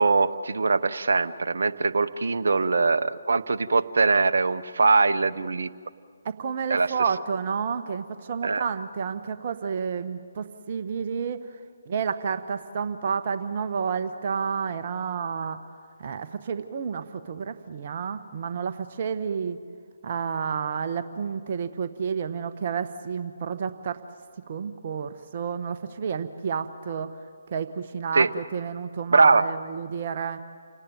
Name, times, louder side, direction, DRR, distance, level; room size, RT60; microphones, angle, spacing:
voice 1, 0.0-5.7 6.7-6.9 8.4-8.6 28.1-28.3 29.1-29.4, right 4 dB, 65° right, 10 dB, 0.8 m, -22 dB
voice 2, 6.2-11.5 11.9-15.6 16.0-19.6 20.0-24.0 24.5-27.2 27.5-30.4, right 6 dB, 45° right, 9 dB, 1.0 m, -30 dB
29.0 x 18.0 x 9.1 m, 2.1 s
figure-of-eight pair, 145°, 0 cm